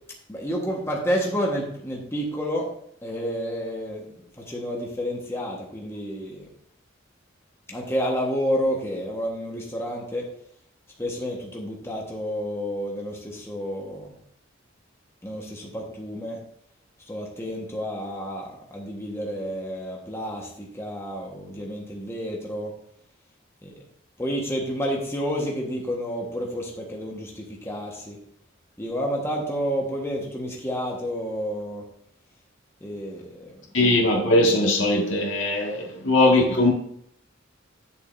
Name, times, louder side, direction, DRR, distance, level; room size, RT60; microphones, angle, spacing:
voice 1, 0.3-2.7 3.0-4.1 4.5-6.5 7.7-10.3 11.0-14.1 15.2-16.4 17.1-22.7 23.6-23.7 24.2-28.2 28.8-31.8 32.8-33.5, equal, 15° left, 1.3 m, -30 dB
voice 2, 33.7-36.7, left 2 dB, 65° left, 1.8 m, -20 dB
10.5 x 7.1 x 2.6 m
head